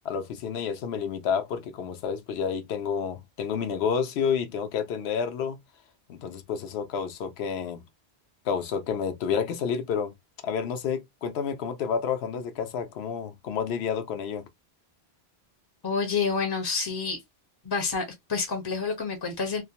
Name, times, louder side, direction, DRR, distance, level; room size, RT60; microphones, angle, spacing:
voice 1, 0.0-5.6 6.1-7.8 8.4-10.1 10.4-14.5, left 7 dB, 80° left, 0.8 m, -30 dB
voice 2, 15.8-17.2 17.6-19.6, left 5 dB, 30° left, 0.5 m, -28 dB
2.4 x 2.1 x 2.7 m
omnidirectional pair, 1.1 m